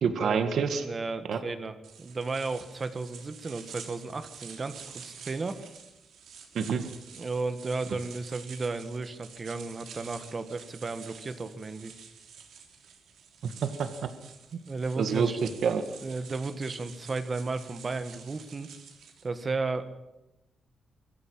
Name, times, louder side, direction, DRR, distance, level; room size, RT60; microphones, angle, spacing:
voice 1, 0.0-0.8 1.3-1.4 6.6-6.8 13.4-14.1 15.0-15.8, right 6 dB, 65° right, 9 dB, 1.8 m, -27 dB
voice 2, 0.8-5.6 7.2-11.9 14.7-15.4 16.0-18.7 19.2-19.9, right 3 dB, 30° right, 10 dB, 1.6 m, -34 dB
sound 1, 1.8-19.3, right 7 dB, 80° right, 3.4 m, -49 dB
22.5 x 14.5 x 8.8 m, 0.96 s
wide cardioid pair, 140°, 0 cm